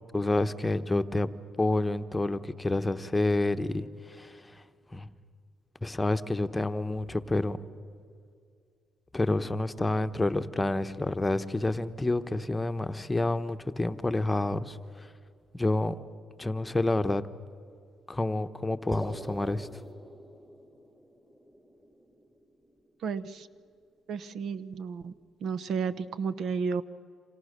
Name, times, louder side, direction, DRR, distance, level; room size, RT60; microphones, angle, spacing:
voice 1, 0.1-1.3 1.6-4.6 4.9-5.1 5.8-7.6 9.1-15.1 15.5-16.0 16.4-17.2 18.1-19.7, left 2 dB, 15° left, 1.0 m, -28 dB
sound 1, 18.9-23.3, equal, 15° right, 3.6 m, -45 dB
voice 2, 23.0-23.5 24.1-25.1 25.4-26.8, right 5 dB, 70° right, 1.0 m, -32 dB
28.5 x 26.5 x 6.7 m
cardioid pair, 90°, 0 cm